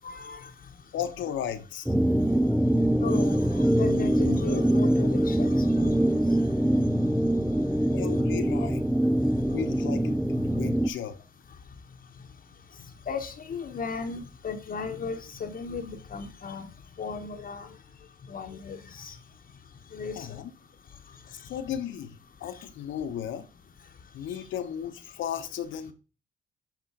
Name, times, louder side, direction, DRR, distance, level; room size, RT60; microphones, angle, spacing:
voice 1, 0.0-0.9 2.0-8.0 8.6-8.7 9.1-9.6 10.4-10.6 11.5-20.4 20.9-21.6 22.5-22.6 23.8-24.4, left 5 dB, 45° left, 1.0 m, -39 dB
voice 2, 0.9-1.9 7.9-8.9 9.5-11.2 20.1-20.5 21.3-23.5 24.1-25.9, left 9 dB, 75° left, 1.0 m, -35 dB
sound 1, 1.9-10.9, right 1 dB, ahead, 0.4 m, -24 dB
8.3 x 3.7 x 4.7 m
cardioid pair, 90°, 20 cm